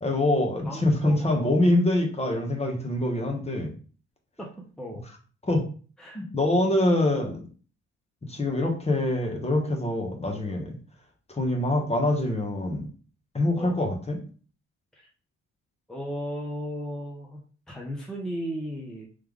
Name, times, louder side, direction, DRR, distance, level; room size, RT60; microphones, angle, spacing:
voice 1, 0.0-3.7 5.4-5.6 6.1-7.4 8.3-10.7 11.3-12.9 13.3-14.2, left 1 dB, 20° left, 2 dB, 1.1 m, -25 dB
voice 2, 0.6-1.6 4.4-4.5 4.8-5.0 6.0-6.3 13.6-13.8 14.9-15.1 15.9-17.4 17.7-19.1, equal, ahead, -2 dB, 0.8 m, -35 dB
3.3 x 3.3 x 3.6 m, 0.39 s
cardioid pair, 90°, 30 cm